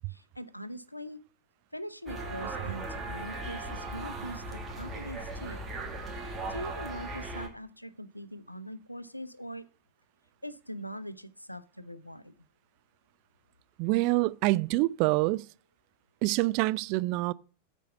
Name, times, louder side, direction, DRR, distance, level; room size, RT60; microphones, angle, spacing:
voice 1, 0.1-1.2 1.7-5.6 6.5-9.7 10.4-12.3, equal, 90° left, 0.5 m, -42 dB
sound 1, 2.1-7.5, right 2 dB, 15° right, 2.0 m, -38 dB
voice 2, 13.8-15.5 16.2-17.3, right 21 dB, 45° right, 0.3 m, -26 dB
8.6 x 4.5 x 6.6 m
figure-of-eight pair, 90°, 0 cm